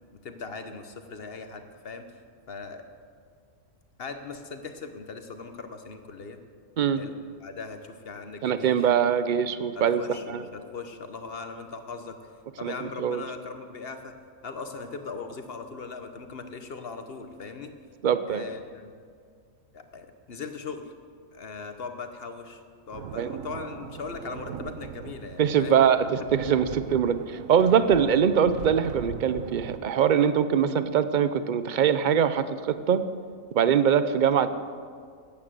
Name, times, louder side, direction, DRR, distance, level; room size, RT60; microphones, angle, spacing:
voice 1, 0.2-2.1 2.5-2.8 4.0-6.4 7.0-8.9 9.7-12.2 12.6-14.2 14.4-17.7 18.3-18.9 19.7-20.9 21.3-25.7 26.5-26.6, left 4 dB, 50° left, 7 dB, 1.2 m, -39 dB
voice 2, 8.4-10.0 10.3-10.4 12.6-13.2 18.0-18.4 23.2-23.3 25.4-33.0 33.5-34.5, right 8 dB, 50° right, 12 dB, 0.6 m, -23 dB
sound 1, 22.9-29.8, right 9 dB, 85° right, 1.1 m, -40 dB
14.0 x 9.0 x 7.6 m, 2.1 s
omnidirectional pair, 1.4 m